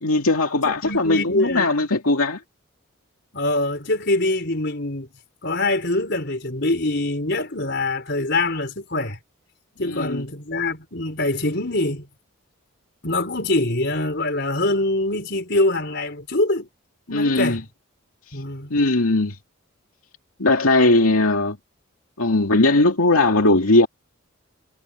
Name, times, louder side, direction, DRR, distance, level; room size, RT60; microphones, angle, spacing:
voice 1, 0.0-2.4 9.8-10.3 17.1-17.6 18.7-19.4 20.4-21.6 22.2-23.9, left 2 dB, 85° left, 2.4 m, -19 dB
voice 2, 0.6-1.7 3.3-5.1 5.4-9.2 9.8-12.1 13.0-16.7 17.1-17.6 18.3-18.8, left 2 dB, 50° left, 4.9 m, -24 dB
head